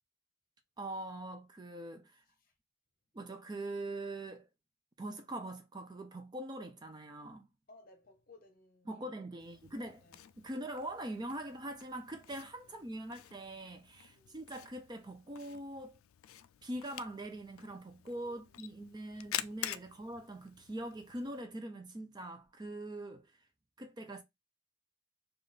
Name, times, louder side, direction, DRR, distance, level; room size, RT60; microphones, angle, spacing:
voice 1, 0.8-2.2 3.1-4.5 5.0-7.5 8.9-10.1 10.4-16.0 16.6-23.4 23.8-24.2, right 1 dB, 20° right, 0.4 m, -43 dB
voice 2, 7.7-9.5 10.0-10.2 12.6-12.8 14.1-14.4 18.1-18.6, left 2 dB, 45° left, 0.8 m, -61 dB
Camera, 9.4-21.4, left 12 dB, 85° left, 0.3 m, -48 dB
3.4 x 2.4 x 3.9 m
head